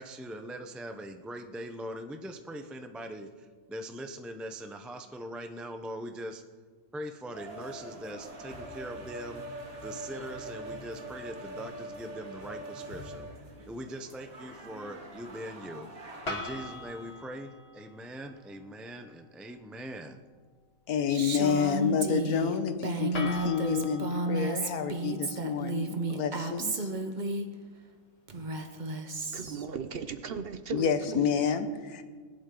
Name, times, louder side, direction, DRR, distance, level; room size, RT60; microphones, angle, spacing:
voice 1, 0.0-6.4 6.9-13.3 13.7-20.2, right 1 dB, ahead, 5 dB, 0.4 m, -41 dB
sound 1, 7.3-17.2, right 1 dB, 70° right, 2.3 m, -44 dB
sound 2, 16.3-18.3 23.1-26.3, left 2 dB, 45° left, 2.1 m, -42 dB
voice 2, 20.9-26.9 30.7-32.0, left 6 dB, 90° left, 9 dB, 1.5 m, -29 dB
Female speech woman speaking, 21.1-27.5 28.3-29.7, right 2 dB, 35° right, 1.0 m, -32 dB
voice 3, 29.3-31.5, right 6 dB, 55° right, 11 dB, 0.7 m, -38 dB
20.5 x 11.5 x 3.8 m, 1.5 s
omnidirectional pair, 1.5 m